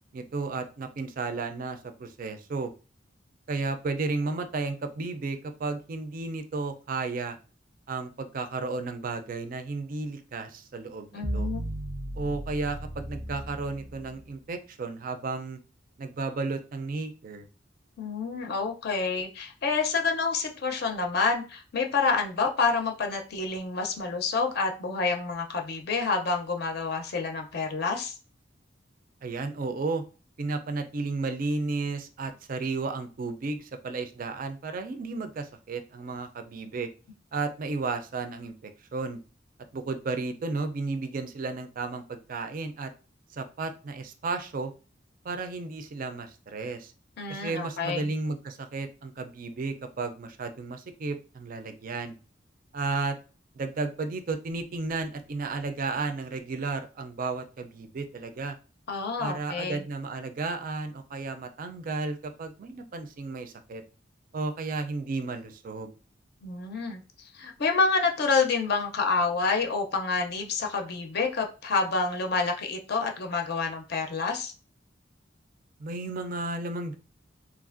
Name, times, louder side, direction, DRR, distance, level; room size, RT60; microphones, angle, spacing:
voice 1, 0.1-2.7 3.5-7.4 7.9-11.5 12.2-15.6 16.0-17.5 29.2-30.0 30.4-36.9 37.3-39.2 39.7-42.9 43.3-44.7 45.2-46.9 47.3-52.2 52.7-53.2 53.5-58.6 59.2-63.8 64.3-65.9 75.8-76.9, right 3 dB, 50° right, 0.4 m, -33 dB
voice 2, 11.1-11.6 18.0-28.1 47.2-48.1 58.9-59.8 66.4-74.5, left 4 dB, 60° left, 0.5 m, -28 dB
sound 1, 11.2-14.3, right 1 dB, 90° right, 0.7 m, -35 dB
3.2 x 2.4 x 2.4 m
head